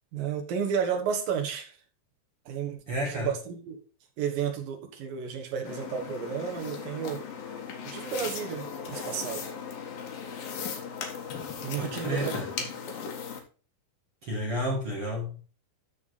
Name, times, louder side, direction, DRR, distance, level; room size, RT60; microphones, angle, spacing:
voice 1, 0.1-1.8 2.5-3.8 4.2-7.2 7.8-9.5 11.6-12.3, right 7 dB, 65° right, 3 dB, 2.9 m, -32 dB
voice 2, 2.9-3.3 11.8-12.5 14.2-15.4, equal, 45° right, -3 dB, 2.3 m, -31 dB
sound 1, 5.7-13.4, left 6 dB, 65° left, 3.2 m, -37 dB
13.0 x 4.8 x 4.2 m, 0.36 s
omnidirectional pair, 4.7 m